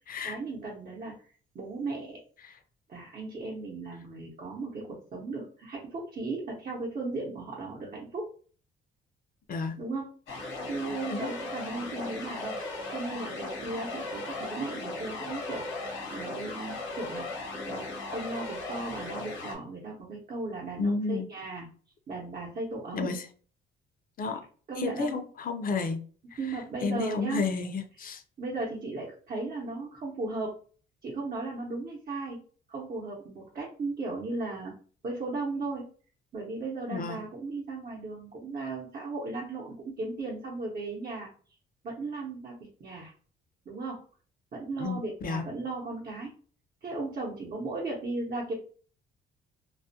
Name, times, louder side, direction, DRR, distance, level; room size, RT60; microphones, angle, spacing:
voice 1, 0.2-1.1 1.5-2.2 2.9-8.2 9.8-10.1 10.7-17.3 17.6-21.7 22.1-23.2 24.7-25.1 26.4-27.4 28.4-30.5 31.0-32.4 32.7-34.7 35.0-35.9 36.3-41.3 41.8-43.1 43.7-44.0 44.5-46.3 46.8-48.5, right 3 dB, 45° right, -3 dB, 0.8 m, -36 dB
sound 1, 10.3-19.6, left 2 dB, 80° left, 0.8 m, -37 dB
voice 2, 20.8-21.3 22.9-23.3 24.2-24.4 24.8-26.0 26.3-28.2 36.9-37.2 44.8-45.4, left 4 dB, 45° left, 6 dB, 0.4 m, -32 dB
2.3 x 2.1 x 2.7 m, 0.42 s
cardioid pair, 90°, 20 cm